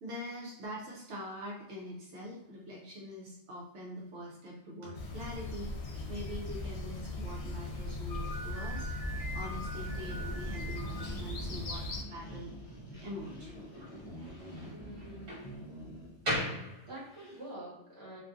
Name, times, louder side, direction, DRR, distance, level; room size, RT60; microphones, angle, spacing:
voice 1, 0.0-5.8 6.1-8.9 9.3-12.5 13.0-13.5, equal, 80° right, -3 dB, 0.9 m, -44 dB
sound 1, 4.9-12.0, left 2 dB, 70° left, 0.8 m, -39 dB
Slam, 8.1-17.4, equal, 50° right, 1.3 m, -42 dB
sound 2, 9.0-16.2, equal, 45° left, 0.3 m, -46 dB
voice 2, 14.6-15.8 16.8-18.2, right 1 dB, 25° right, -8 dB, 1.2 m, -47 dB
2.5 x 2.5 x 2.3 m, 0.86 s
omnidirectional pair, 1.2 m